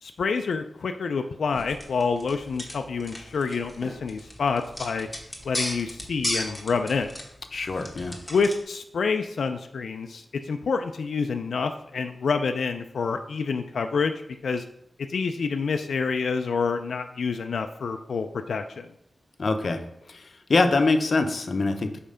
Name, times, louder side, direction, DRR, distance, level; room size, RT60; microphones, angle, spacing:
voice 1, 0.0-5.1 5.4-7.1 8.3-14.6 15.0-18.9, left 5 dB, 90° left, 6 dB, 0.3 m, -27 dB
sound 1, 1.5-8.6, left 1 dB, 10° left, 1.1 m, -36 dB
voice 2, 7.5-8.2 19.4-19.8 20.1-22.1, left 3 dB, 50° left, 7 dB, 0.6 m, -24 dB
5.5 x 4.4 x 5.0 m, 0.78 s
wide cardioid pair, 140°, 0 cm